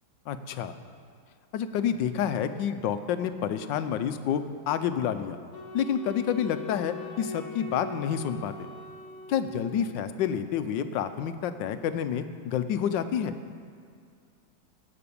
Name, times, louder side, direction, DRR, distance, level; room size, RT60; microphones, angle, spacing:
voice 1, 0.3-0.7 1.5-5.4 5.7-8.7 9.3-13.3, left 8 dB, 75° left, 10 dB, 1.3 m, -29 dB
Wind instrument woodwind instrument, 5.5-10.0, left 3 dB, 55° left, 2.1 m, -41 dB
16.5 x 6.0 x 8.5 m, 2.2 s
omnidirectional pair, 2.1 m